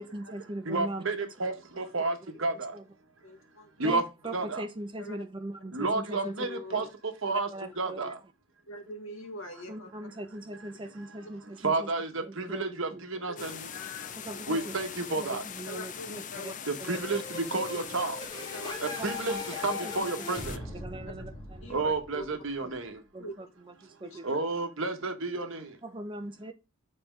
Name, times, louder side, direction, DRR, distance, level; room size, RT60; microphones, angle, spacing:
voice 1, 0.0-1.0 2.7-2.8 3.8-6.3 7.2-8.1 9.7-11.9 12.5-12.6 12.9-13.0 14.2-14.8 15.2-16.5 16.8-17.2 19.0-19.4 19.7-20.1 20.5-21.9 23.1-24.2 25.8-26.5, right 1 dB, 20° right, 0.7 m, -40 dB
voice 2, 0.7-2.8 3.8-4.0 4.3-4.6 5.7-6.8 7.2-7.5 7.8-8.2 11.6-13.7 14.5-15.4 16.7-18.2 18.8-20.6 21.7-23.0 24.2-25.7, right 3 dB, 60° right, 1.2 m, -31 dB
voice 3, 3.2-4.0 4.2-4.4 5.0-5.2 6.4-6.9 7.6-7.8 8.7-9.9 12.2-12.5 13.3-14.7 15.7-16.5 18.0-18.1 18.5-18.8 19.6-19.8 21.6-22.3 23.2-23.3 24.0-24.4, left 1 dB, 65° left, 1.6 m, -43 dB
sound 1, 13.4-20.6, left 8 dB, 35° left, 0.5 m, -42 dB
sound 2, 16.9-22.6, left 2 dB, 20° left, 2.5 m, -40 dB
6.8 x 4.2 x 5.1 m
head